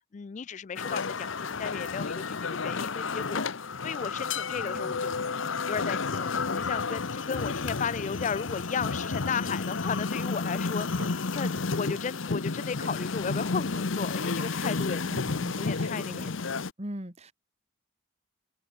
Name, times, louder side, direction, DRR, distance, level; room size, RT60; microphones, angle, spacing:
voice 1, 0.1-3.4 3.8-5.1 5.7-15.0 15.6-16.3, left 6 dB, 35° left, 0.3 m, -35 dB
sound 1, 0.8-16.7, left 4 dB, 65° left, 0.9 m, -31 dB
voice 2, 4.6-5.0 15.0-16.4 16.8-17.3, right 1 dB, 30° right, 2.1 m, -41 dB
sound 2, 10.8-11.2 11.5-12.0 12.4-13.0 13.3-13.8 14.2-14.8 15.1-15.3 15.5-15.7 16.0-16.1, right 2 dB, 60° right, 3.5 m, -45 dB
head